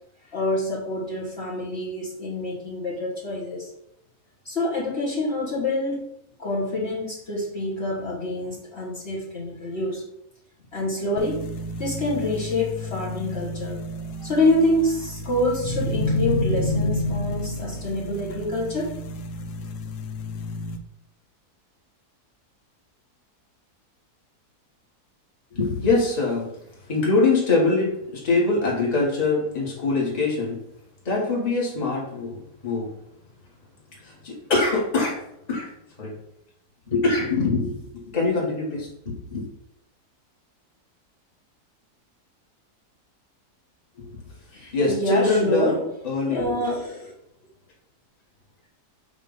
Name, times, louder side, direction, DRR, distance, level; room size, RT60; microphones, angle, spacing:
voice 1, 0.2-3.7 4.4-6.0 6.4-10.0 10.7-11.4 11.8-18.9 44.5-45.8 46.3-47.1, left 1 dB, 45° left, -5 dB, 1.6 m, -26 dB
sound 1, 11.2-20.8, left 1 dB, 80° left, 1.2 m, -30 dB
voice 2, 25.5-26.5 26.9-30.6 31.0-32.4 32.6-32.9 34.0-35.2 35.5-35.7 36.0-36.1 36.9-39.4 44.0-44.1 44.7-46.5, left 3 dB, 25° left, -4 dB, 1.6 m, -23 dB
6.8 x 2.8 x 5.5 m, 0.79 s
omnidirectional pair, 1.7 m